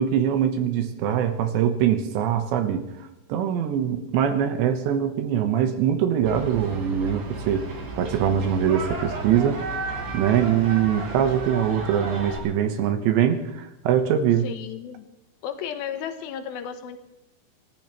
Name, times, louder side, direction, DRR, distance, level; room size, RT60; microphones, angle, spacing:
voice 1, 0.0-2.9 3.3-7.7 8.0-9.6 10.1-14.5, right 9 dB, 80° right, 7 dB, 3.2 m, -23 dB
sound 1, 6.2-12.4, right 3 dB, 45° right, 5.3 m, -33 dB
voice 2, 14.4-15.1 15.4-17.0, left 8 dB, 80° left, 8 dB, 2.3 m, -34 dB
26.0 x 14.5 x 3.1 m, 0.90 s
omnidirectional pair, 5.4 m